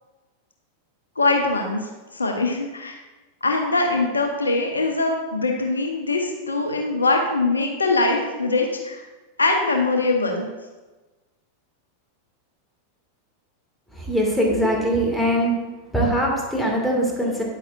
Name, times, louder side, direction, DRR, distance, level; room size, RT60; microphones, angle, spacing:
voice 1, 1.2-3.0 3.4-9.0 9.4-10.5, left 3 dB, 75° left, 2 dB, 1.0 m, -22 dB
voice 2, 13.9-15.5 15.9-17.4, equal, 5° left, -2 dB, 2.3 m, -22 dB
10.0 x 8.8 x 2.6 m, 1.2 s
figure-of-eight pair, 90°, 0 cm